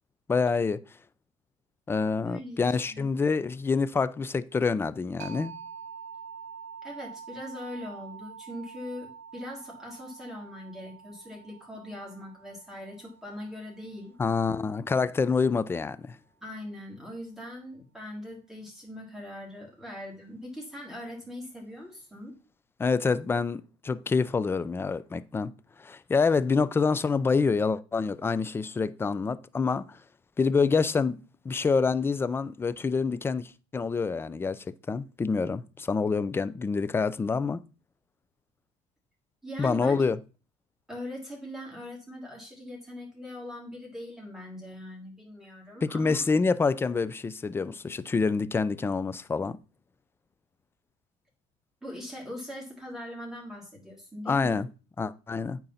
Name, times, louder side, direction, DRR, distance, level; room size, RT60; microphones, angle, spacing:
voice 1, 0.3-0.8 1.9-5.5 14.2-16.2 22.8-25.5 25.8-30.0 30.4-31.2 31.4-37.6 39.6-40.2 45.8-49.6 54.3-54.7 55.0-55.6, left 4 dB, 15° left, 0.4 m, -27 dB
voice 2, 2.2-2.6 2.9-3.1 6.8-14.1 16.4-22.3 39.4-40.0 40.9-46.2 51.8-54.6, left 1 dB, 5° right, 2.9 m, -41 dB
sound 1, 5.2-14.6, right 6 dB, 45° right, 2.3 m, -46 dB
8.9 x 3.9 x 5.7 m
cardioid pair, 120°, 16 cm